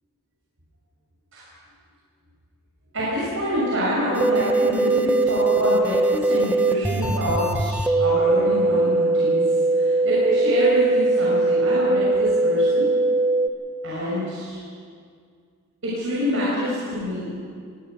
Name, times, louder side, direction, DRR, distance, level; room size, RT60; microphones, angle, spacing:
voice 1, 2.9-9.4 9.7-12.9 13.8-14.6 15.8-17.3, equal, 60° right, -7 dB, 6.4 m, -26 dB
sound 1, 4.1-13.5, right 3 dB, 5° right, 0.9 m, -21 dB
22.5 x 18.5 x 6.5 m, 2.1 s
head